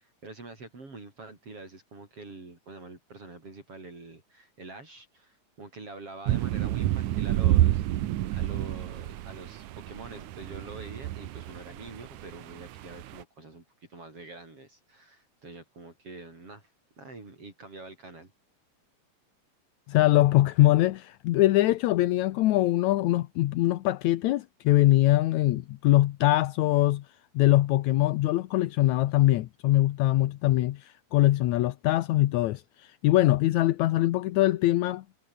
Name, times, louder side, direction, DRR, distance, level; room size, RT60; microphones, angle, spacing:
voice 1, 0.0-13.6 13.9-16.7 17.0-18.3, right 3 dB, 50° right, 6.9 m, -46 dB
sound 1, 6.3-13.2, right 14 dB, 85° right, 2.5 m, -29 dB
voice 2, 19.9-27.0 27.4-35.0, left 16 dB, 80° left, 2.2 m, -23 dB
omnidirectional pair, 3.3 m